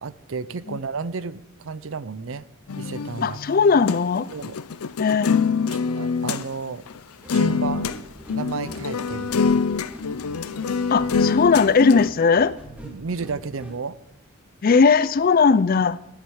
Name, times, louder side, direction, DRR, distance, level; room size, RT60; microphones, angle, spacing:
voice 1, 0.0-2.5 2.8-3.4 4.3-4.6 5.7-6.8 7.3-7.9 8.3-9.5 12.8-14.0, right 4 dB, 60° right, 0.5 m, -32 dB
sound 1, 2.7-6.4 6.9-7.0 7.3-8.0 8.3-12.1, left 5 dB, 85° left, 0.6 m, -25 dB
voice 2, 3.2-4.3 5.0-5.4 10.9-12.6 14.6-16.0, left 5 dB, 40° left, 0.4 m, -18 dB
sound 2, 7.2-13.8, right 1 dB, 5° right, 2.2 m, -43 dB
10.5 x 8.0 x 7.1 m
head